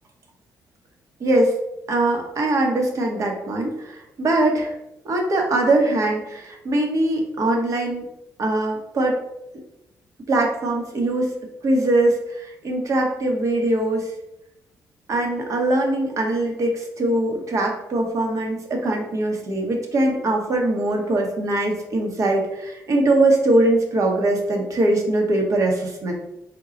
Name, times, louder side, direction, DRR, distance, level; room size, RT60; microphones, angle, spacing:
voice 1, 1.2-1.5 1.9-4.7 5.0-8.1 8.4-9.2 10.3-11.3 11.6-14.1 15.1-26.1, right 2 dB, 50° right, 1 dB, 1.1 m, -21 dB
4.5 x 2.3 x 3.8 m, 0.85 s
cardioid pair, 95°, 7 cm